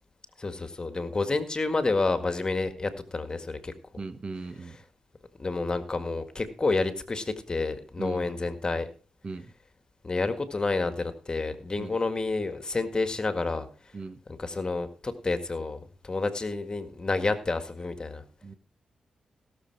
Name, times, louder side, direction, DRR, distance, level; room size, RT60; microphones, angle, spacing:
voice 1, 0.4-3.7 5.4-8.9 10.0-13.7 14.4-18.2, left 3 dB, 35° left, 9 dB, 1.8 m, -29 dB
voice 2, 4.0-4.8 8.0-8.4 9.2-9.5 11.8-12.0 13.9-14.2 18.4-18.5, right 3 dB, 45° right, 11 dB, 1.2 m, -38 dB
17.0 x 6.9 x 4.7 m, 0.38 s
cardioid pair, 60°, 2 cm